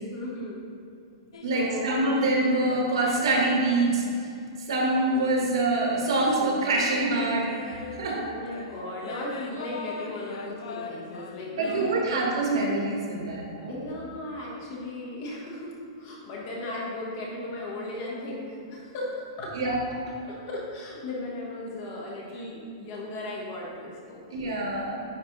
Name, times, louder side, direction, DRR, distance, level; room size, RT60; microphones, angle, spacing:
voice 1, 0.1-0.6 1.4-1.9 8.1-12.2 13.7-19.7 20.2-24.7, left 1 dB, 35° left, -3 dB, 1.2 m, -36 dB
sound 1, 1.3-4.1 4.7-12.5, left 4 dB, 75° left, 0.6 m, -42 dB
voice 2, 1.4-4.0 4.7-8.3 11.5-13.8 19.5-19.8 24.3-25.0, right 2 dB, 75° right, -2 dB, 1.5 m, -25 dB
9.7 x 3.3 x 4.0 m, 2.5 s
supercardioid pair, 175°, 3 cm